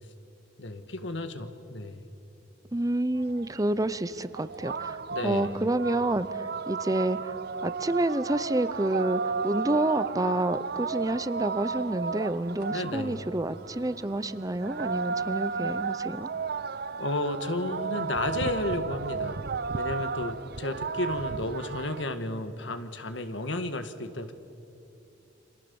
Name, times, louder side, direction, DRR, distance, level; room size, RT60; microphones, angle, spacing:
voice 1, 0.6-2.0 5.1-5.6 12.7-13.3 16.9-19.4 19.7-24.3, left 2 dB, 80° left, 9 dB, 1.7 m, -33 dB
voice 2, 2.7-5.0 5.2-6.3 6.7-7.3 7.6-16.3, right 1 dB, 20° right, 14 dB, 0.7 m, -28 dB
sound 1, 3.2-22.1, right 5 dB, 60° right, 0.6 m, -34 dB
29.5 x 26.0 x 7.1 m, 2.8 s
head